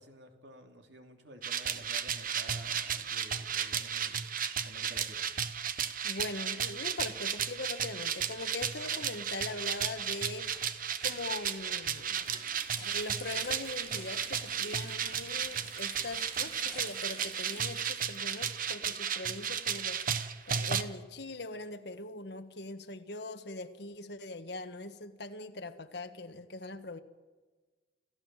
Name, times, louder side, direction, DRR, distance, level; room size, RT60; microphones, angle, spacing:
voice 1, 0.0-4.3 4.6-5.3, right 1 dB, 85° right, 4 dB, 2.9 m, -51 dB
sound 1, 1.4-20.8, right 8 dB, 50° right, 1.1 m, -34 dB
voice 2, 6.0-10.6 11.0-12.4 12.8-20.2 20.5-27.0, left 2 dB, 65° left, 8 dB, 1.6 m, -41 dB
sound 2, 8.2-17.5, left 2 dB, 5° left, 7.0 m, -57 dB
Water tap faucet, 11.8-19.6 19.8-19.9 20.7-22.3, right 3 dB, 35° right, 3.5 m, -51 dB
28.5 x 16.0 x 7.6 m, 1.4 s
head